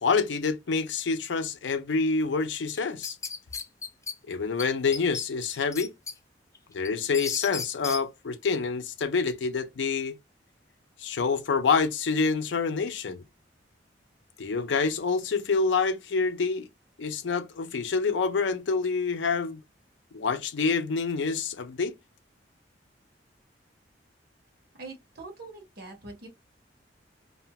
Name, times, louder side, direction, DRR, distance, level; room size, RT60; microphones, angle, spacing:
voice 1, 0.0-3.2 4.3-5.9 6.7-10.2 11.0-13.2 14.4-16.7 17.0-19.6 20.1-21.9, left 4 dB, 75° left, 0.5 m, -27 dB
sound 1, 2.7-4.2 4.6-4.7 4.9-6.1 6.6-8.0, left 5 dB, 15° left, 0.3 m, -35 dB
voice 2, 24.8-26.3, right 3 dB, 60° right, 1.1 m, -43 dB
2.6 x 2.2 x 2.8 m
head